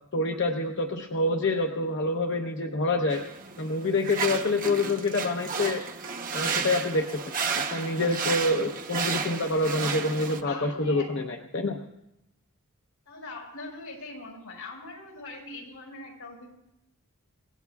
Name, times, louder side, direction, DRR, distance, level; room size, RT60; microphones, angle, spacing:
voice 1, 0.1-3.2 3.6-5.8 6.3-7.3 7.7-11.8, left 2 dB, 55° left, 2 dB, 0.9 m, -27 dB
sound 1, 3.1-10.4, right 5 dB, 40° right, 0.9 m, -32 dB
voice 2, 10.0-11.1 13.1-16.5, left 2 dB, 85° left, -1 dB, 5.1 m, -42 dB
28.0 x 17.0 x 2.4 m, 0.88 s
head